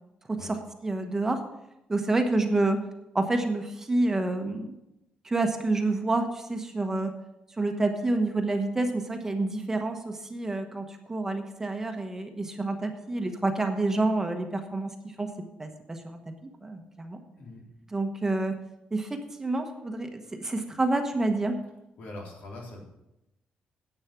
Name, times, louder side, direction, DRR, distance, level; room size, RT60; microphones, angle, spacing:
voice 1, 0.3-1.4 1.9-2.8 3.1-4.8 5.2-7.1 7.6-16.3 16.6-17.2 17.9-18.6 18.9-21.6, right 2 dB, 15° right, 5 dB, 1.1 m, -28 dB
voice 2, 22.0-22.8, left 2 dB, 75° left, -2 dB, 3.8 m, -42 dB
10.5 x 8.1 x 5.9 m, 0.89 s
cardioid pair, 145°, 3 cm